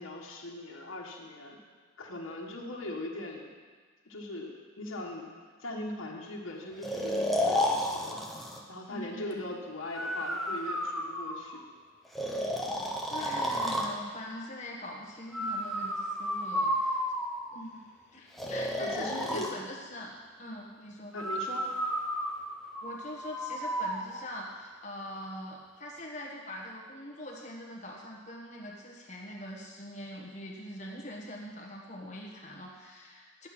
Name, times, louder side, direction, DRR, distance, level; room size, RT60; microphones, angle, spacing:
voice 1, 0.0-1.6 2.0-3.6 4.0-5.3 5.6-8.2 8.7-11.6 18.8-19.5 21.1-21.7, left 1 dB, 85° left, -2 dB, 1.4 m, -40 dB
Breathing, 6.8-8.6 9.9-11.6 12.1-13.9 15.3-17.6 18.4-19.5 21.2-24.0, equal, ahead, 0.9 m, -32 dB
voice 2, 8.9-9.6 12.2-12.6 13.1-17.0 17.5-21.2 22.8-33.5, left 1 dB, 35° left, -2 dB, 1.4 m, -43 dB
11.5 x 8.1 x 6.0 m, 1.5 s
head